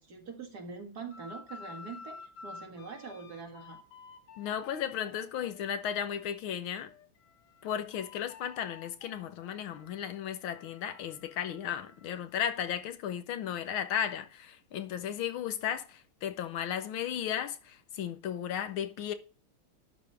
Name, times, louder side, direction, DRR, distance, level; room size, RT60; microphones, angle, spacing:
voice 1, 0.0-3.8, right 4 dB, 50° right, 2.3 m, -44 dB
sound 1, 1.1-6.4 6.8-12.1, left 4 dB, 60° left, 1.5 m, -52 dB
voice 2, 4.4-6.9 7.6-19.1, left 9 dB, 75° left, 1.7 m, -35 dB
11.5 x 4.2 x 5.2 m
omnidirectional pair, 2.4 m